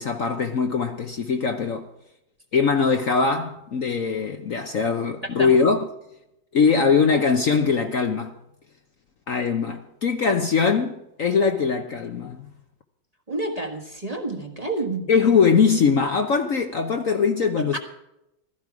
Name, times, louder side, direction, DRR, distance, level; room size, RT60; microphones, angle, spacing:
voice 1, 0.0-1.9 2.5-5.9 6.5-8.3 9.3-12.5 15.1-17.8, left 5 dB, 55° left, 1.1 m, -21 dB
voice 2, 13.3-15.1 17.7-17.8, right 2 dB, 20° right, 1.4 m, -29 dB
16.0 x 14.0 x 4.8 m
omnidirectional pair, 2.0 m